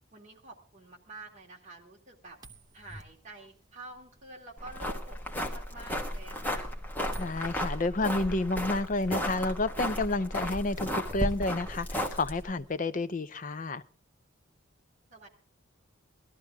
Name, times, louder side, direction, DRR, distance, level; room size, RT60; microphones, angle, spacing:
voice 1, 0.1-2.4 2.7-6.7 15.1-15.3, right 2 dB, 35° right, 2.5 m, -48 dB
sound 1, 2.3-12.8, right 1 dB, 20° right, 0.7 m, -43 dB
sound 2, 4.6-12.5, equal, 10° left, 1.3 m, -35 dB
voice 2, 7.2-13.8, left 2 dB, 40° left, 0.6 m, -30 dB
18.5 x 13.0 x 3.5 m
head